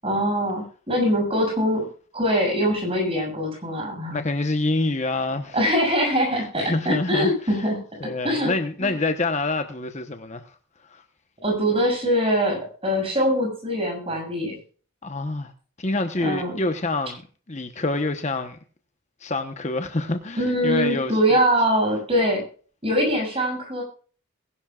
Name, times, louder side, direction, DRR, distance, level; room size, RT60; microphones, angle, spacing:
voice 1, 0.0-1.9 2.1-4.2 5.5-7.8 8.2-8.5 8.8-8.9 11.4-14.6 16.2-16.5 20.4-22.4 22.8-23.8, equal, 25° right, 7.1 m, -23 dB
voice 2, 4.1-5.7 6.6-7.6 8.0-10.6 10.8-11.0 15.0-15.5 15.8-17.2 17.5-18.6 19.2-21.4, left 2 dB, 35° left, 1.0 m, -27 dB
21.5 x 11.5 x 2.4 m
head